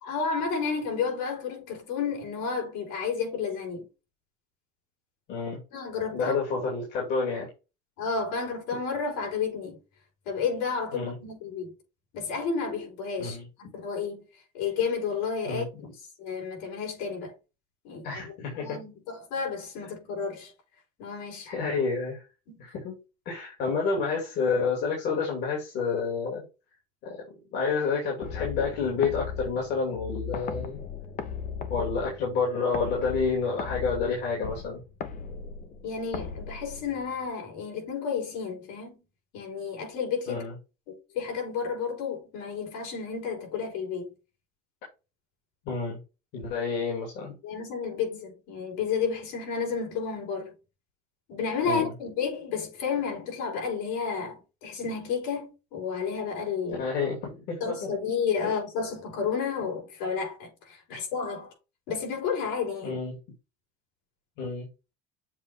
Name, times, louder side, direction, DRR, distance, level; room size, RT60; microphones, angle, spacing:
voice 1, 0.0-3.9 5.7-6.6 8.0-9.8 10.3-11.7 12.1-13.4 13.7-14.2 14.5-15.7 16.2-17.3 17.8-18.0 18.5-20.5 21.0-21.5 22.5-22.6 35.8-39.0 39.3-40.4 40.9-44.1 47.4-50.5 51.3-56.9 57.6-61.5 61.9-63.0, left 5 dB, 75° left, 3.9 m, -31 dB
voice 2, 5.3-5.6 6.1-7.5 10.9-11.2 13.2-13.5 15.4-15.7 18.0-18.8 21.5-22.2 22.6-23.0 23.3-26.4 27.0-27.3 27.5-30.8 31.7-34.8 40.3-40.6 45.7-46.0 46.3-47.3 51.6-51.9 56.8-58.0 62.8-63.2 64.4-64.7, left 4 dB, 55° left, 2.5 m, -29 dB
sound 1, 28.2-37.3, left 6 dB, 40° left, 0.9 m, -38 dB
7.3 x 2.6 x 5.1 m
cardioid pair, 140°, 21 cm